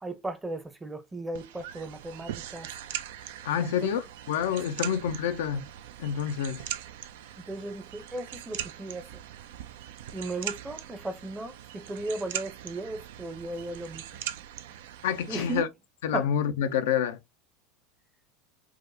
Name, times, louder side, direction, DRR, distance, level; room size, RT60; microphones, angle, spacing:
voice 1, 0.0-2.7 3.6-3.9 4.8-4.9 7.4-9.1 10.1-14.0 15.3-15.6 16.1-16.3, right 2 dB, 15° right, 0.6 m, -36 dB
sound 1, 1.3-15.6, right 11 dB, 75° right, 0.4 m, -41 dB
voice 2, 3.4-5.7 6.0-6.7 15.0-15.7 16.0-17.2, left 8 dB, 75° left, 0.4 m, -28 dB
4.7 x 2.1 x 2.6 m
hypercardioid pair, 90°, 0 cm